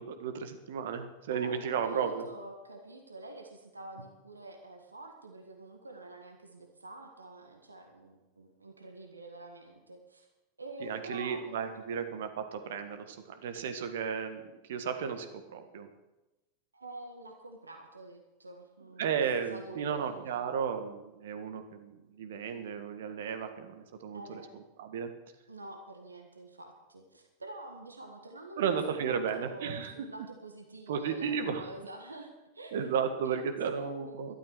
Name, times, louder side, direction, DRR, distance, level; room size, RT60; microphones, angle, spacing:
voice 1, 0.0-2.3 10.8-15.9 19.0-24.4 24.8-25.1 28.6-29.9 30.9-31.7 32.7-34.4, right 7 dB, 55° right, 8 dB, 1.6 m, -34 dB
voice 2, 1.2-10.3 10.6-11.8 16.7-19.2 19.5-20.3 24.1-24.5 25.5-32.9 33.2-33.4 33.7-34.4, right 2 dB, 80° right, 4 dB, 1.7 m, -47 dB
12.5 x 12.5 x 6.3 m, 1.0 s
figure-of-eight pair, 90°, 0 cm